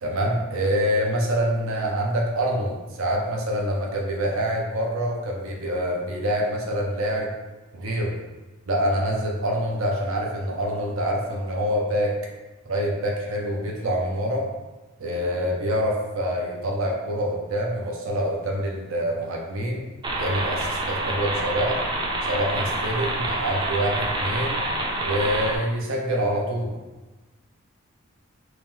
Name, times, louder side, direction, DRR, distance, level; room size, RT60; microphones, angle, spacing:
voice 1, 0.0-7.3 7.7-8.2 8.7-12.1 12.7-14.5 15.0-19.8 20.2-21.9 22.2-24.6 25.0-26.8, equal, 80° right, -1 dB, 0.6 m, -26 dB
sound 1, 20.0-25.6, right 2 dB, 20° right, 0.4 m, -27 dB
3.0 x 2.9 x 3.7 m, 1.2 s
head